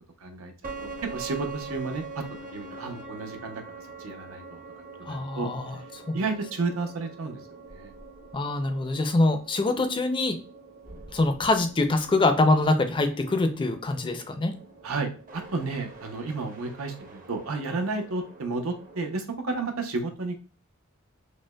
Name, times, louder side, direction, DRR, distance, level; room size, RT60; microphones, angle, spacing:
voice 1, 0.2-2.2 2.5-3.6 4.0-4.6 5.0-5.5 6.1-7.4 7.7-7.9 14.8-20.4, right 3 dB, 90° right, 5 dB, 0.7 m, -32 dB
sound 1, 0.6-19.0, right 4 dB, 40° right, 0.7 m, -44 dB
voice 2, 5.1-5.8 6.1-6.2 8.3-10.4 11.1-14.6, left 2 dB, 25° left, 7 dB, 0.4 m, -24 dB
5.0 x 2.1 x 2.2 m, 0.36 s
head